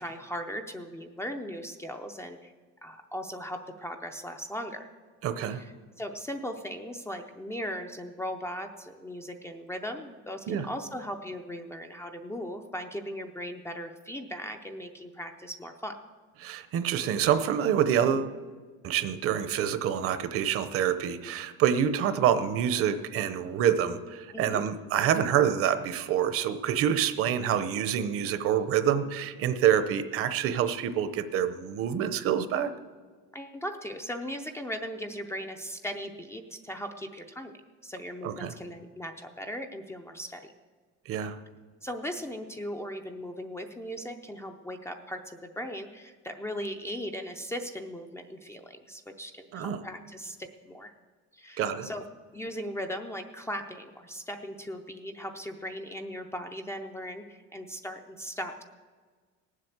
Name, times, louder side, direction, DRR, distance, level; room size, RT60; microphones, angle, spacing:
voice 1, 0.0-2.5 2.8-4.9 5.6-16.0 24.3-24.6 33.3-37.5 37.8-40.5 41.8-50.9 51.3-52.0 52.3-58.6, equal, 10° left, 5 dB, 0.5 m, -38 dB
voice 2, 5.2-5.6 10.5-10.7 16.4-18.3 18.8-32.7 38.2-38.5 41.1-41.4 49.5-49.8 51.6-51.9, right 9 dB, 45° right, 12 dB, 0.8 m, -27 dB
18.5 x 7.7 x 8.0 m, 1.5 s
cardioid pair, 170°, 30 cm